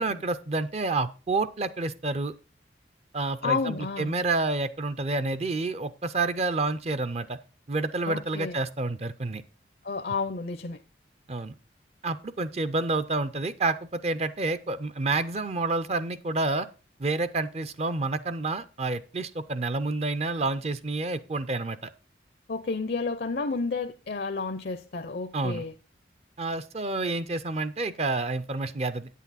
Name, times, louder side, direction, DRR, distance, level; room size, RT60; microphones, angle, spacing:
voice 1, 0.0-2.3 3.1-7.4 7.7-9.4 11.3-11.5 12.0-16.7 17.0-21.9 25.3-25.6 26.4-29.1, right 3 dB, 35° right, 0.4 m, -29 dB
voice 2, 3.4-4.1 8.1-8.6 9.8-10.8 22.5-25.7, left 4 dB, 60° left, 0.5 m, -31 dB
9.0 x 8.3 x 4.1 m
head